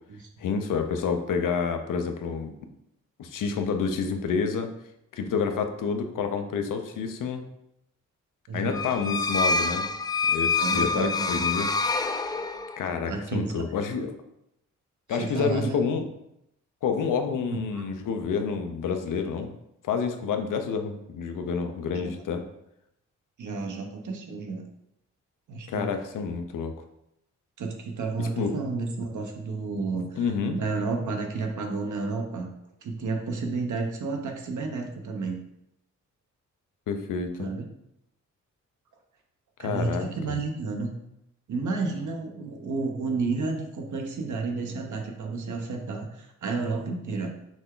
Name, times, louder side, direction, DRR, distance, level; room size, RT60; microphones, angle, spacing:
voice 1, 0.4-2.5 3.2-4.7 5.1-7.4 8.5-9.9 10.3-11.7 12.8-14.2 15.1-16.0 16.8-19.6 19.8-22.4 25.7-26.7 28.2-28.5 30.1-30.6 36.9-37.5 39.6-40.1, left 6 dB, 90° left, 6 dB, 0.6 m, -28 dB
voice 2, 8.5-8.8 10.6-11.5 13.1-13.7 15.1-15.8 17.5-17.8 21.9-22.1 23.4-24.7 25.5-25.9 27.6-30.2 30.5-32.5 32.8-35.4 37.4-37.7 39.6-40.9 41.5-47.3, right 3 dB, 70° right, 3 dB, 0.9 m, -31 dB
sound 1, 8.7-12.9, left 4 dB, 15° left, 0.3 m, -26 dB
6.1 x 2.3 x 3.7 m, 0.81 s
cardioid pair, 80°, 31 cm